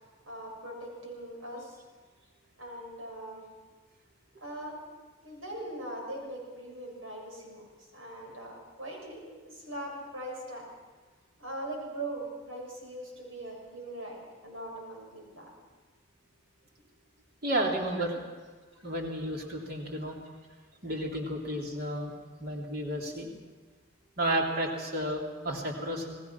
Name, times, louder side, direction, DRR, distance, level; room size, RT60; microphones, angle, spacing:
voice 1, 0.3-1.8 2.6-3.4 4.4-4.8 5.2-7.6 7.9-10.7 11.4-15.5 17.9-18.0 18.7-18.8, right 1 dB, 80° right, 0 dB, 7.1 m, -41 dB
voice 2, 17.4-18.1 18.8-20.2 20.8-23.3 24.2-26.2, right 1 dB, 50° right, 0 dB, 3.4 m, -32 dB
29.5 x 19.0 x 6.1 m, 1.3 s
head